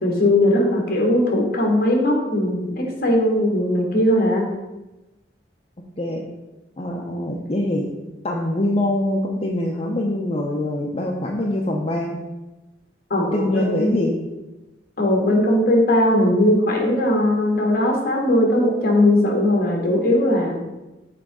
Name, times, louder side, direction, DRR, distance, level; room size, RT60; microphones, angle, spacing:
voice 1, 0.0-4.5 13.1-13.9 15.0-20.6, left 1 dB, 55° left, 0 dB, 1.6 m, -19 dB
voice 2, 6.8-7.9 8.2-12.2 13.3-14.2, left 1 dB, 30° left, -1 dB, 0.6 m, -23 dB
7.5 x 3.7 x 4.7 m, 1.1 s
head